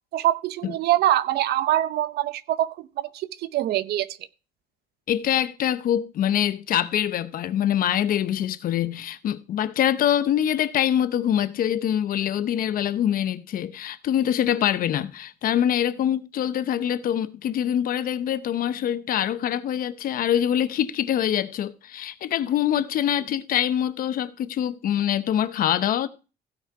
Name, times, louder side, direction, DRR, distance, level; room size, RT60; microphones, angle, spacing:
voice 1, 0.1-4.1, right 13 dB, 70° right, 0.8 m, -24 dB
voice 2, 5.1-26.1, left 10 dB, 55° left, 0.7 m, -24 dB
16.0 x 5.8 x 4.7 m
cardioid pair, 110°, 17 cm